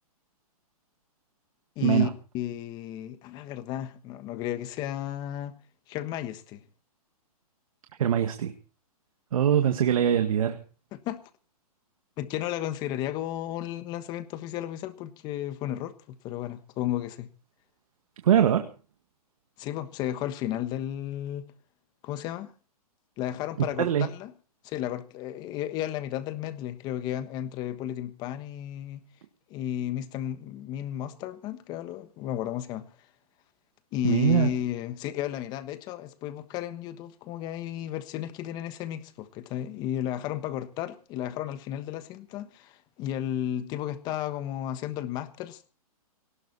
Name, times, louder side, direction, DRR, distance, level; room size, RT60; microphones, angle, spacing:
voice 1, 1.8-2.1 2.3-5.6 5.9-6.6 10.9-11.2 12.2-17.3 19.6-21.5 22.0-22.5 23.2-24.3 24.6-29.0 29.5-32.8 33.9-45.7, left 12 dB, 20° left, 1.3 m, -33 dB
voice 2, 8.0-8.5 9.3-10.6 18.2-18.7 23.8-24.1 34.0-34.5, right 9 dB, 65° right, 1.9 m, -22 dB
18.5 x 16.5 x 4.2 m
hypercardioid pair, 160°, 19 cm